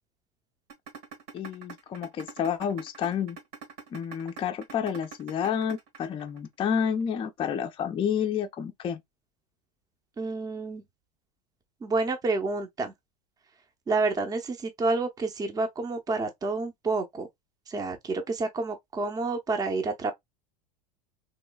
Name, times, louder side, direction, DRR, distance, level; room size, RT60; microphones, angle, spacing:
sound 1, 0.7-6.7, right 5 dB, 80° right, 1.4 m, -43 dB
voice 1, 1.3-3.4 3.9-9.0, left 8 dB, 25° left, 0.4 m, -30 dB
voice 2, 10.2-10.8 11.8-12.9 13.9-17.3 17.7-20.1, right 3 dB, 20° right, 0.6 m, -29 dB
3.0 x 3.0 x 2.2 m
hypercardioid pair, 105°, 21 cm